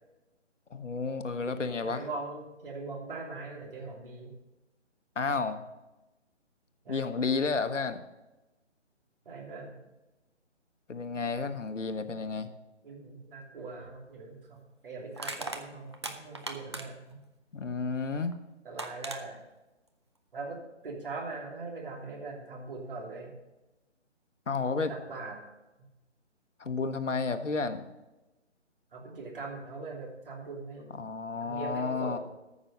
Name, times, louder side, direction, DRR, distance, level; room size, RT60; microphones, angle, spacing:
voice 1, 0.7-2.0 5.2-5.6 6.9-8.0 10.9-12.5 17.5-18.4 24.5-24.9 26.6-27.9 30.9-32.2, left 4 dB, 80° left, 10 dB, 1.1 m, -31 dB
voice 2, 1.4-4.3 6.8-7.1 9.2-9.8 12.8-17.2 18.6-19.4 20.3-20.6 20.8-23.3 24.6-25.4 28.9-31.0 31.4-32.2, right 3 dB, 45° right, -1 dB, 3.0 m, -41 dB
Crushing, 13.8-13.9 15.2-17.1 18.3-18.4 18.8-19.2, right 2 dB, 25° right, 0.5 m, -38 dB
14.0 x 6.2 x 5.4 m, 1.0 s
figure-of-eight pair, 155°, 36 cm